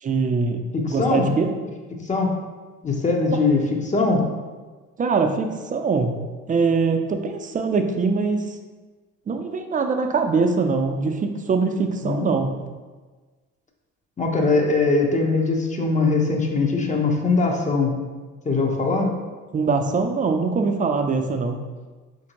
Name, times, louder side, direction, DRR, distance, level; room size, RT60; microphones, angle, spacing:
voice 1, 0.0-0.6 0.9-1.5 3.3-3.4 5.0-6.2 6.5-8.5 9.3-12.5 18.9-19.0 19.5-21.6, right 4 dB, 25° right, 5 dB, 0.4 m, -22 dB
voice 2, 0.7-1.4 2.0-2.3 2.8-3.6 3.8-4.2 12.0-12.3 14.2-17.9 18.4-19.1, left 3 dB, 20° left, 1 dB, 0.7 m, -21 dB
4.3 x 2.6 x 2.9 m, 1.3 s
supercardioid pair, 70°, 34 cm